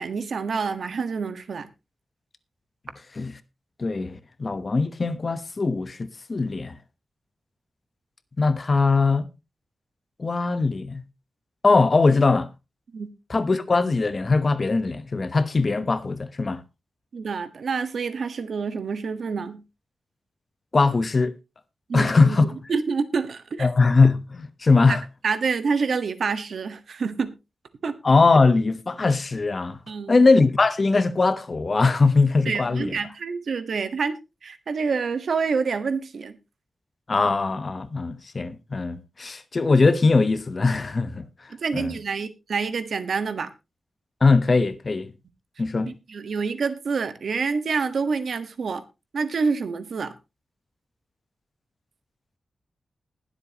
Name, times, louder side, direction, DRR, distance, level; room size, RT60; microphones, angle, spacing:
voice 1, 0.0-1.7 12.9-13.1 17.1-19.6 21.9-23.7 24.8-25.0 25.2-27.3 27.8-27.9 29.9-30.2 32.4-36.4 41.5-43.5 45.9-48.8 49.1-50.1, right 5 dB, 65° right, 1.4 m, -27 dB
voice 2, 3.8-6.8 8.4-9.2 10.2-11.0 11.6-12.5 13.3-16.6 20.7-21.3 21.9-22.5 23.6-25.0 28.0-29.8 30.1-32.9 37.1-41.2 41.7-42.0 44.2-45.1 45.6-45.9, left 3 dB, 35° left, 1.0 m, -21 dB
20.5 x 7.8 x 2.9 m
wide cardioid pair, 180°, 0 cm